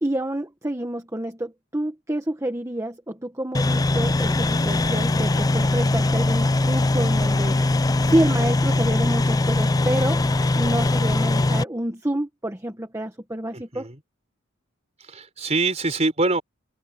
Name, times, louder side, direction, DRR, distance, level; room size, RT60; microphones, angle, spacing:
voice 1, 0.0-7.7 8.1-10.2 10.5-13.9, right 1 dB, 15° right, 1.2 m, -28 dB
sound 1, 3.5-11.6, left 2 dB, 15° left, 0.4 m, -21 dB
voice 2, 13.5-14.0 15.0-16.4, right 3 dB, 30° right, 4.2 m, -24 dB
open air
head